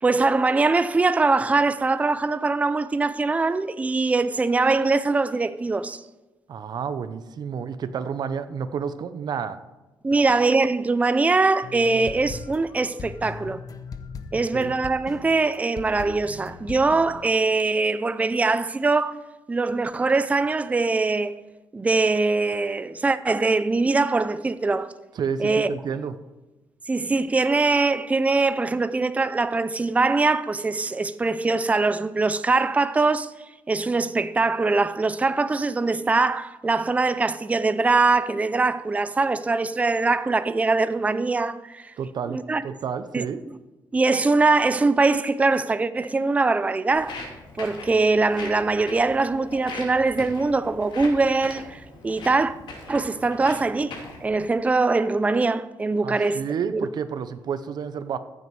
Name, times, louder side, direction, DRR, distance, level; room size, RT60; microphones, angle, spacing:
voice 1, 0.0-6.0 10.0-13.6 14.3-19.2 19.5-21.3 21.7-24.9 25.4-25.7 26.9-33.3 33.7-41.9 42.3-42.6 43.1-43.6 43.9-47.2 47.6-52.5 52.9-56.4 56.7-56.9, right 3 dB, 15° right, 0.5 m, -22 dB
voice 2, 6.5-9.6 14.5-14.7 25.2-26.1 42.0-43.4 56.0-58.2, right 7 dB, 60° right, 0.8 m, -30 dB
sound 1, 11.6-17.5, left 5 dB, 50° left, 1.0 m, -39 dB
Walk footsteps, 46.9-54.3, left 3 dB, 80° left, 2.9 m, -40 dB
14.5 x 8.2 x 4.8 m
cardioid pair, 120°, 8 cm